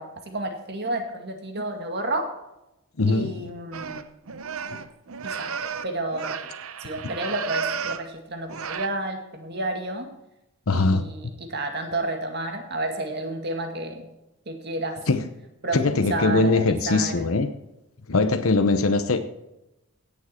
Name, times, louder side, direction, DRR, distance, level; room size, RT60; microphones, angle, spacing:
voice 1, 0.0-2.3 3.1-4.0 5.2-6.5 6.8-10.1 10.7-14.1 14.5-15.0 15.6-17.3, right 2 dB, 50° right, 4 dB, 2.1 m, -31 dB
voice 2, 3.0-3.3 10.7-11.0 15.1-15.2 15.7-17.5 18.1-19.2, left 3 dB, 75° left, 8 dB, 0.9 m, -21 dB
sound 1, 3.7-8.1 8.5-8.9, right 6 dB, 75° right, 0.7 m, -33 dB
16.5 x 7.4 x 4.4 m, 0.91 s
head